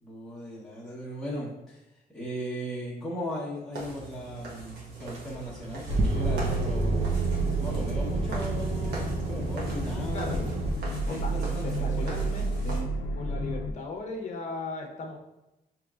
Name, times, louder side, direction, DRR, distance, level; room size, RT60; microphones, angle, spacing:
voice 1, 0.0-1.8 2.1-7.2 7.6-10.5 11.0-12.4, equal, ahead, -11 dB, 1.0 m, -37 dB
sound 1, 3.7-12.8, right 2 dB, 80° right, 1.3 m, -42 dB
sound 2, 5.1-10.7, right 3 dB, 40° right, 0.5 m, -30 dB
sound 3, 6.1-13.7, right 2 dB, 85° left, 0.4 m, -32 dB
voice 2, 10.1-10.5 11.1-15.2, left 3 dB, 45° left, 2 dB, 0.8 m, -38 dB
5.0 x 3.0 x 2.4 m, 0.95 s
cardioid pair, 130°, 16 cm